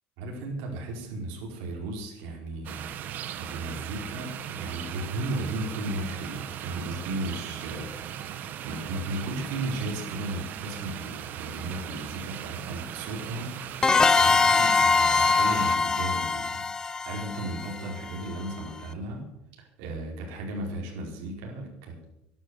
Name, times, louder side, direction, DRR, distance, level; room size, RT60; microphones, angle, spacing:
voice 1, 0.2-8.0 8.4-19.3 19.6-22.2, right 2 dB, 80° right, -1 dB, 4.6 m, -35 dB
sound 1, 2.6-15.8, right 10 dB, 45° right, 1.2 m, -38 dB
sound 2, 13.8-18.3, left 4 dB, 15° left, 0.6 m, -23 dB
13.0 x 11.0 x 8.0 m, 0.82 s
cardioid pair, 145°, 4 cm